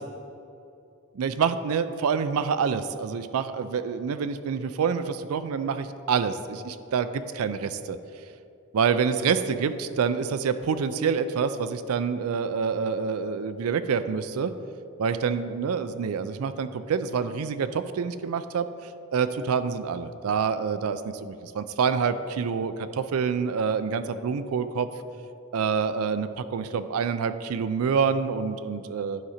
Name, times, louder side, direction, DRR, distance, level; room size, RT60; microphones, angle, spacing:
voice 1, 1.1-8.0 8.7-14.5 15.0-24.9 25.5-29.2, right 6 dB, 90° right, 11 dB, 0.4 m, -27 dB
11.0 x 4.9 x 4.2 m, 2.7 s
head